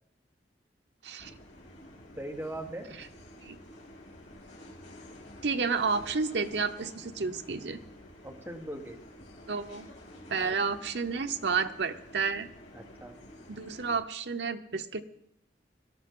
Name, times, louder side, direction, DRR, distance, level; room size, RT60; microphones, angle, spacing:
sound 1, 1.2-14.0, equal, 85° left, 3.3 m, -50 dB
voice 1, 2.1-3.0 8.2-9.0 10.3-10.6 12.7-13.2, right 1 dB, 10° right, 2 dB, 1.3 m, -40 dB
voice 2, 5.4-7.8 9.5-9.9 10.3-12.5 13.5-15.0, right 5 dB, 70° right, 7 dB, 0.8 m, -31 dB
17.5 x 12.5 x 3.8 m, 0.77 s
head